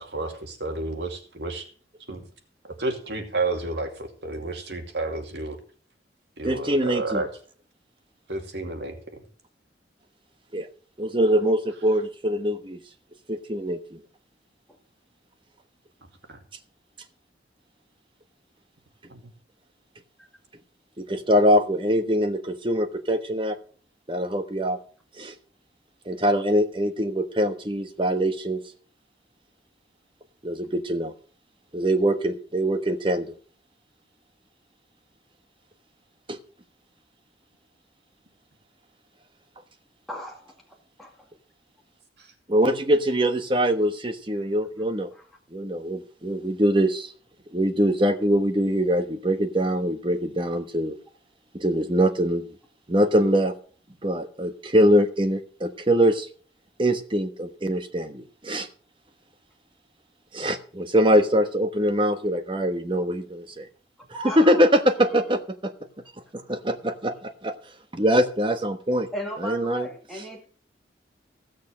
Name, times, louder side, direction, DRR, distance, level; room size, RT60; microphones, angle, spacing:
voice 1, 0.0-1.7 2.1-2.2 2.6-5.6 6.4-7.3 8.3-9.0 16.3-16.4 19.1-19.2, right 2 dB, 65° right, 5 dB, 2.5 m, -31 dB
voice 2, 6.4-7.2 10.5-10.7 11.0-12.8 13.3-14.0 21.0-23.6 24.1-24.8 25.2-25.3 26.1-28.6 30.4-31.1 31.7-33.3 36.3-36.4 42.5-45.1 45.5-47.1 47.5-51.0 51.5-52.4 52.9-53.5 54.0-56.3 56.8-58.7 60.3-63.7 64.4-65.7 66.3-67.6 67.9-69.1 69.4-69.9, equal, 25° right, 8 dB, 1.2 m, -23 dB
voice 3, 40.1-40.6 41.0-41.1 45.1-45.2 64.1-64.7 69.1-70.5, equal, ahead, -2 dB, 2.3 m, -35 dB
16.0 x 6.6 x 6.3 m, 0.43 s
head